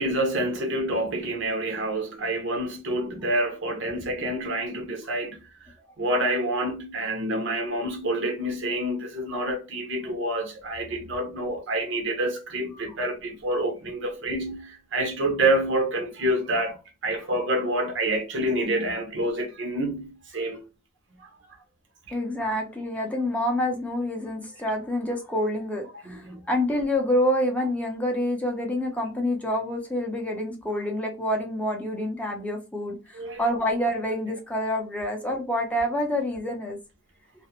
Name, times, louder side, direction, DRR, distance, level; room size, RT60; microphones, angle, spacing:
voice 1, 0.0-5.4 6.0-16.8 17.0-20.6 21.2-21.3 26.0-26.4 33.1-33.4, right 1 dB, 65° right, 0.7 m, -27 dB
voice 2, 22.1-36.8, left 1 dB, 5° left, 0.5 m, -27 dB
2.4 x 2.0 x 2.8 m
head